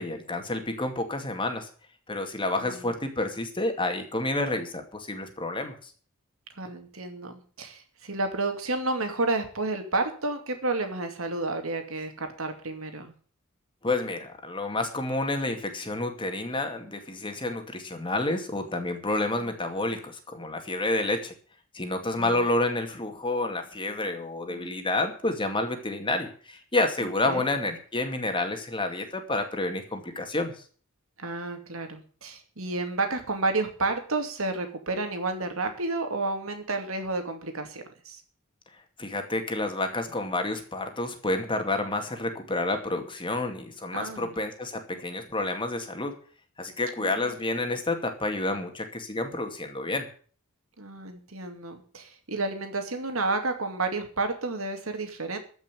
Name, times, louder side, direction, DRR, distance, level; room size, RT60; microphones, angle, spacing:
voice 1, 0.0-1.7 2.1-5.9 13.8-21.3 21.7-30.5 39.0-46.1 46.6-50.1, left 2 dB, 25° left, 5 dB, 2.3 m, -29 dB
voice 2, 2.6-2.9 6.6-13.1 19.2-19.5 22.2-22.3 24.5-24.8 27.3-27.5 31.2-38.2 43.9-44.3 47.0-47.2 50.8-55.4, right 3 dB, 80° right, 6 dB, 2.5 m, -31 dB
14.5 x 6.0 x 9.1 m, 0.43 s
head